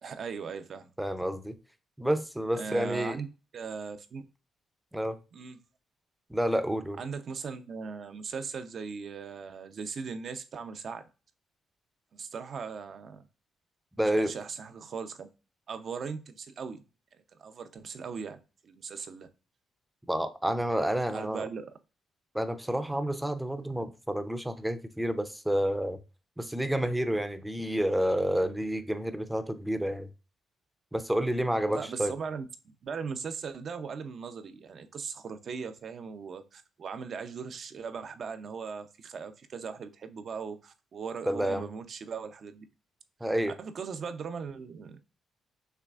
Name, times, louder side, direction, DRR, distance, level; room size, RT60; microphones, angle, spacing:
voice 1, 0.0-0.9 2.5-3.3 3.5-4.2 5.3-5.6 7.0-11.1 12.1-13.2 14.2-15.3 15.7-16.8 17.1-19.3 21.1-21.7 31.7-42.6 43.6-45.0, right 5 dB, 55° right, 0.6 m, -39 dB
voice 2, 1.0-1.6 2.0-3.2 4.9-5.2 6.3-7.0 14.0-14.3 20.1-21.4 22.3-26.0 26.4-30.1 30.9-32.1 41.3-41.6 43.2-43.5, equal, 5° right, 0.5 m, -29 dB
5.7 x 3.2 x 2.4 m
cardioid pair, 90°, 0 cm